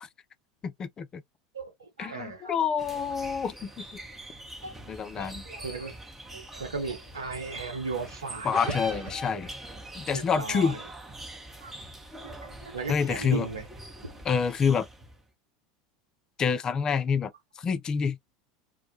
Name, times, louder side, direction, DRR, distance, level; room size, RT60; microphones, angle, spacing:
voice 1, 0.6-1.2 2.0-4.0 4.9-5.4 8.4-9.5 9.9-10.8 12.9-13.5 14.3-14.9 16.4-17.3 17.6-18.2, left 6 dB, 30° left, 0.4 m, -27 dB
voice 2, 1.5-2.6 4.6-4.7 5.2-5.9 6.3-9.0 10.1-10.8 11.6-11.7 12.2-13.7 14.0-14.2, right 4 dB, 85° right, 0.8 m, -36 dB
sound 1, 2.8-15.2, right 1 dB, 15° right, 0.7 m, -44 dB
sound 2, 8.5-9.9, left 1 dB, 30° right, 1.1 m, -36 dB
2.2 x 2.0 x 2.7 m
hypercardioid pair, 80°, 2 cm